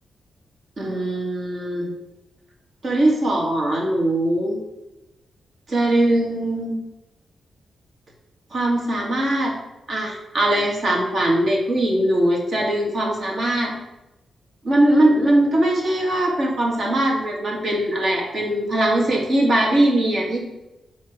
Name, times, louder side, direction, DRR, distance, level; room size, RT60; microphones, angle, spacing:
voice 1, 0.8-1.9 2.8-4.6 5.7-6.8 8.5-9.5 9.9-13.7 14.6-20.4, right 1 dB, 45° right, -1 dB, 1.8 m, -21 dB
7.2 x 3.2 x 5.8 m, 0.98 s
wide cardioid pair, 125°, 0 cm